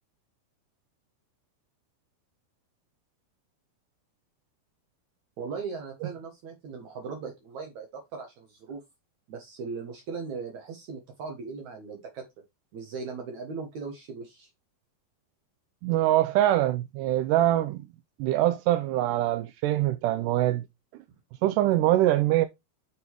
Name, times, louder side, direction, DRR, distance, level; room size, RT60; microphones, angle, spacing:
voice 1, 5.4-8.8 9.3-12.3 12.7-14.5, right 5 dB, 60° right, 2.4 m, -38 dB
voice 2, 15.8-17.8 18.2-20.6 21.4-22.5, right 14 dB, 80° right, 1.9 m, -23 dB
6.7 x 5.2 x 4.6 m
omnidirectional pair, 4.3 m